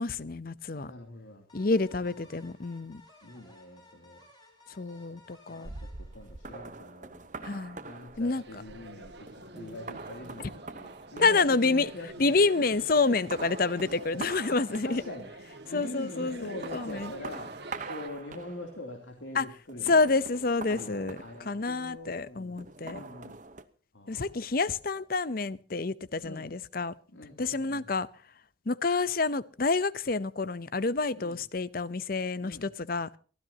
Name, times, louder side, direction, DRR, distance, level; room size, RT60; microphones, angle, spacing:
voice 1, 0.0-0.9 1.5-3.0 4.8-5.7 7.4-7.8 8.2-8.4 11.2-11.9 12.2-15.0 15.7-16.4 16.7-17.1 19.3-19.4 19.9-21.2 21.5-23.0 24.1-26.9 27.4-28.1 28.7-33.2, left 3 dB, 50° left, 17 dB, 0.7 m, -28 dB
voice 2, 0.8-1.4 2.0-2.2 3.2-4.2 4.8-5.1 5.5-5.7 6.0-7.5 7.8-12.5 14.1-14.6 14.8-15.3 15.7-17.5 17.8-20.1 20.7-23.4 23.9-24.3 26.2-26.5 27.1-27.9 31.1-31.4 32.4-32.6, left 1 dB, 75° left, 3 dB, 2.9 m, -44 dB
sound 1, 1.5-6.9, left 2 dB, 20° left, 5.2 m, -58 dB
sound 2, 5.6-12.4 12.7-15.4 16.3-18.9 19.7-21.9 22.6-23.6, right 3 dB, 40° right, 1.0 m, -44 dB
sound 3, 8.3-18.1, right 2 dB, 55° right, 1.9 m, -48 dB
23.0 x 15.5 x 2.8 m, 0.39 s
head